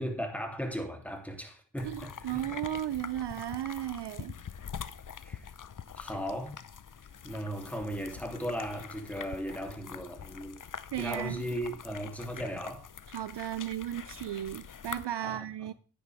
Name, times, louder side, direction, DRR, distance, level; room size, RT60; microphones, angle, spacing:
voice 1, 0.0-2.4 5.2-5.4 6.0-6.6 7.2-10.6 11.0-12.8 15.2-15.4, equal, 5° left, 2.9 m, -37 dB
sound 1, 1.8-15.1, left 7 dB, 40° left, 0.7 m, -44 dB
voice 2, 1.8-4.4 10.9-11.4 13.1-15.7, right 12 dB, 60° right, 0.5 m, -35 dB
9.9 x 9.6 x 3.5 m
cardioid pair, 50°, 48 cm